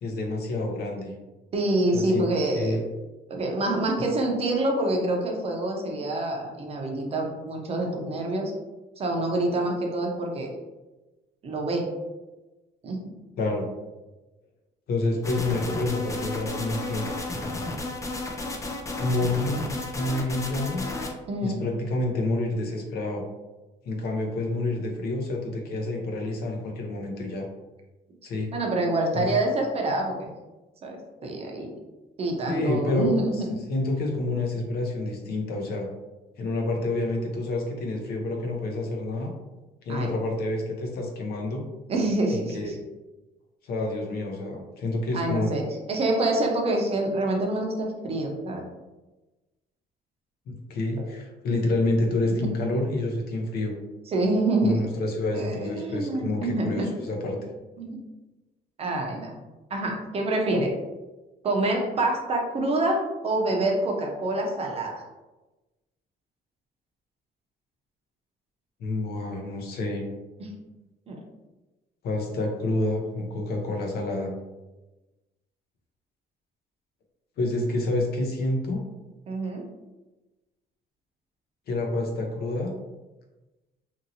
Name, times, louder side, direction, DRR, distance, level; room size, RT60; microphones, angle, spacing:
voice 1, 0.0-1.1 1.9-2.2 2.6-2.8 13.4-13.7 14.9-17.1 19.0-19.7 19.9-20.9 21.4-23.2 23.8-27.5 28.2-28.5 29.1-29.3 32.5-35.9 36.4-39.3 39.8-41.6 42.3-42.8 43.6-45.5 50.5-53.7 54.6-57.4 68.8-70.1 72.0-74.3 77.4-78.8 81.7-82.7, left 2 dB, 65° left, 1 dB, 0.6 m, -28 dB
voice 2, 1.5-2.8 3.3-8.5 9.0-10.5 11.4-11.9 12.8-13.1 21.3-21.6 28.5-30.3 30.8-31.7 32.2-33.5 39.9-40.1 41.9-42.7 45.1-45.6 45.9-48.6 52.4-52.5 54.1-54.8 55.3-56.9 57.8-58.0 58.8-59.4 59.7-60.7 61.4-65.0 70.4-70.5 71.1-71.2 79.3-79.6, right 2 dB, 35° right, 1 dB, 0.5 m, -26 dB
sound 1, 15.2-21.1, left 2 dB, 20° left, 0.4 m, -32 dB
2.9 x 2.7 x 2.7 m, 1.1 s
cardioid pair, 155°, 18 cm